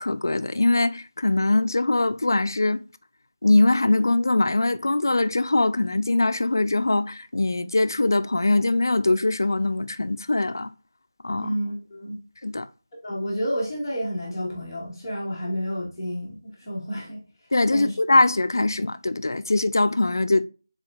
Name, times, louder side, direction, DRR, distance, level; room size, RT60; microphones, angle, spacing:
voice 1, 0.0-2.8 3.4-10.7 11.2-11.5 12.4-12.7 17.5-20.5, left 2 dB, 65° left, 0.3 m, -22 dB
voice 2, 11.4-12.2 13.0-17.2 17.7-18.0, equal, 10° left, 0.8 m, -30 dB
4.2 x 3.8 x 2.4 m
figure-of-eight pair, 175°, 2 cm